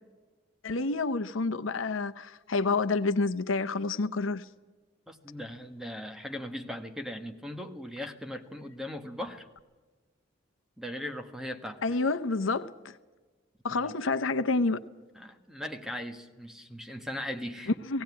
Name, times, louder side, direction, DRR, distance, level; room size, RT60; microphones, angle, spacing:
voice 1, 0.6-4.4 11.8-12.9 13.6-14.8 17.9-18.0, left 3 dB, 80° left, 0.8 m, -28 dB
voice 2, 5.1-9.5 10.8-11.8 13.7-13.9 15.1-17.7, left 1 dB, ahead, 1.3 m, -39 dB
18.0 x 17.5 x 9.5 m
head